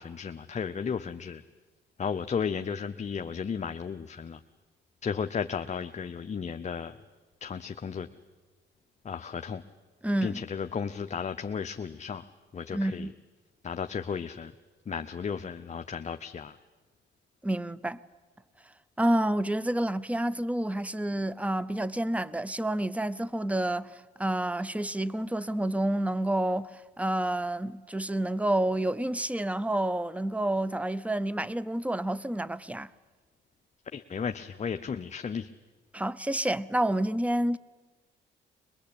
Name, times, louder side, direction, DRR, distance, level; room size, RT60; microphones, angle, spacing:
voice 1, 0.0-1.4 2.0-4.4 5.0-7.0 7.4-8.1 9.0-9.6 10.2-12.2 12.5-13.1 13.6-14.5 14.9-16.6 33.9-35.5, left 6 dB, 35° left, 0.8 m, -34 dB
voice 2, 10.0-10.4 12.7-13.1 17.4-18.0 19.0-32.9 35.9-37.6, right 1 dB, 5° right, 0.7 m, -29 dB
22.5 x 22.0 x 8.7 m
cardioid pair, 90°, 20 cm